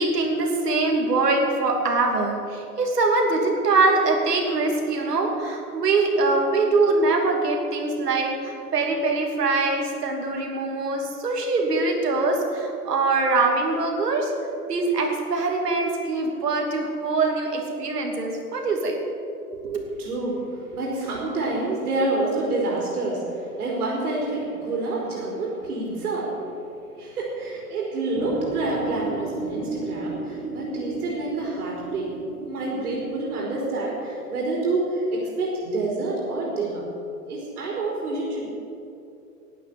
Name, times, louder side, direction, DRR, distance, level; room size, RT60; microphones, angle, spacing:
voice 1, 0.0-14.3 14.7-19.0 19.5-19.8, right 3 dB, 85° right, 2 dB, 2.9 m, -23 dB
voice 2, 20.0-26.4 26.9-32.1 32.5-36.8 37.3-38.5, right 2 dB, 70° right, -4 dB, 4.1 m, -28 dB
sound 1, 28.1-34.4, right 3 dB, 20° right, 1.7 m, -33 dB
12.0 x 9.2 x 8.9 m, 2.7 s
hypercardioid pair, 120°, 46 cm